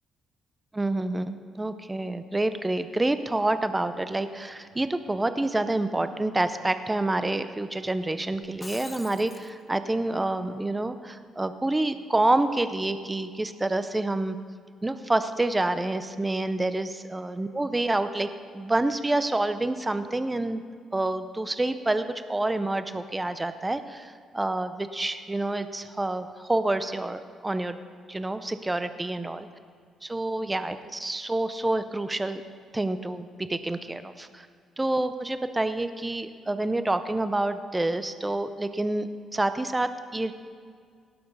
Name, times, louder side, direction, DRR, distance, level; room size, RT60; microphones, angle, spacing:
voice 1, 0.7-14.4 14.8-18.3 18.5-20.6 20.9-27.8 28.1-29.5 30.0-32.4 32.7-34.5 34.8-40.3, right 2 dB, 15° right, 11 dB, 0.6 m, -28 dB
Shatter, 8.4-9.5, left 3 dB, 25° left, 0.9 m, -43 dB
17.5 x 6.9 x 5.4 m, 2.1 s
cardioid pair, 90°, 0 cm